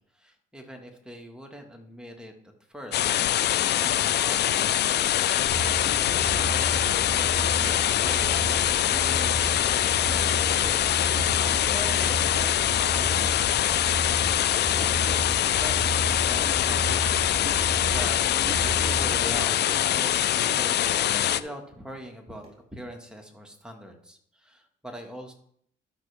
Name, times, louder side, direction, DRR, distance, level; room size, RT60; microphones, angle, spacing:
voice 1, 0.1-2.3 2.7-3.1 3.3-13.7 14.5-17.0 17.5-25.3, equal, 5° right, 2 dB, 1.7 m, -42 dB
sound 1, 2.9-21.4, left 12 dB, 60° left, 0.4 m, -24 dB
sound 2, 5.5-19.4, right 1 dB, 40° left, 3.6 m, -33 dB
sound 3, 15.4-15.6 16.4-16.7 17.4-17.7 18.4-18.6 19.4-19.6 20.4-20.8 21.4-21.6 22.4-22.6, right 3 dB, 35° right, 3.7 m, -44 dB
12.0 x 5.9 x 3.4 m, 0.64 s
cardioid pair, 90°, 20 cm